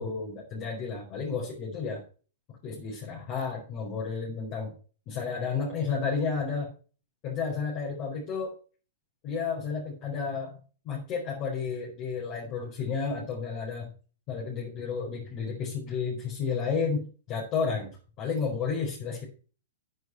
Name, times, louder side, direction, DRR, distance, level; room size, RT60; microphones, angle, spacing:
voice 1, 0.0-2.0 2.6-4.7 5.1-6.7 7.2-8.6 9.2-10.6 10.8-13.9 14.3-19.2, left 5 dB, 30° left, -3 dB, 4.5 m, -32 dB
9.7 x 9.6 x 4.5 m, 0.38 s
hypercardioid pair, 160°, 0 cm